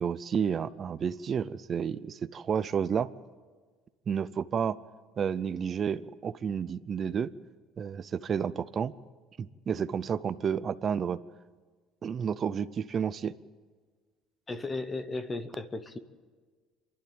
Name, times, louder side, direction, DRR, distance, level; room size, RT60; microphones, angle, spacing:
voice 1, 0.0-3.1 4.1-4.8 5.2-7.3 7.8-8.9 9.4-11.2 12.0-13.3, right 7 dB, 25° right, 15 dB, 0.5 m, -31 dB
voice 2, 14.5-16.0, left 3 dB, 15° left, 12 dB, 0.8 m, -35 dB
28.5 x 12.0 x 8.8 m, 1.5 s
cardioid pair, 175°, 0 cm